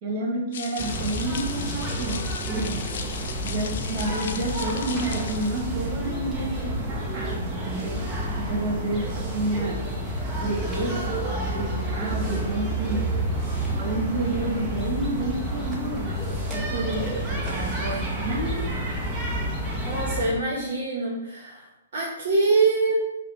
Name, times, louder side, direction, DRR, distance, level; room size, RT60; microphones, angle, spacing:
voice 1, 0.0-2.8 3.4-8.0 8.4-9.9 10.3-13.2 13.7-18.6, right 2 dB, 35° right, -1 dB, 1.4 m, -30 dB
sound 1, 0.5-5.7, left 6 dB, 55° left, 0.4 m, -37 dB
sound 2, 0.8-20.3, right 1 dB, 10° right, 0.8 m, -29 dB
voice 2, 19.8-21.7 21.9-23.0, right 3 dB, 50° right, -3 dB, 0.9 m, -24 dB
4.9 x 2.2 x 4.2 m, 0.92 s
figure-of-eight pair, 120°, 0 cm